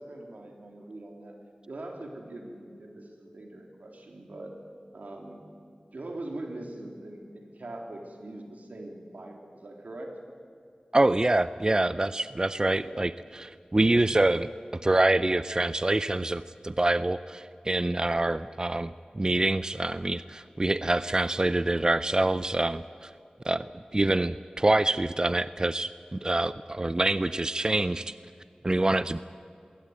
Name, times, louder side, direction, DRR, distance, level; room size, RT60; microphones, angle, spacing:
voice 1, 0.0-1.3 1.7-4.5 4.9-5.4 5.9-10.1 12.7-13.1, right 2 dB, 90° right, 2 dB, 3.5 m, -42 dB
voice 2, 10.9-14.5 14.8-23.1 23.4-28.1 28.6-29.2, right 2 dB, 30° right, 14 dB, 0.5 m, -26 dB
22.0 x 18.0 x 8.8 m, 2.3 s
wide cardioid pair, 70°, 3 cm